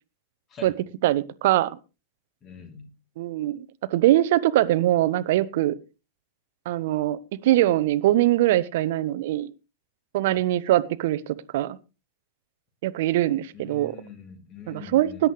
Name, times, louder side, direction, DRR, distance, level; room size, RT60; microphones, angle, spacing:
voice 1, 1.0-1.7 3.2-3.6 3.9-5.8 6.7-9.5 10.1-11.8 12.8-14.0 14.7-15.3, right 14 dB, 55° right, 17 dB, 0.8 m, -22 dB
voice 2, 2.4-2.9 10.3-10.5 13.5-15.3, left 5 dB, 30° left, 7 dB, 3.1 m, -44 dB
20.0 x 10.5 x 3.2 m, 0.30 s
figure-of-eight pair, 90°, 0 cm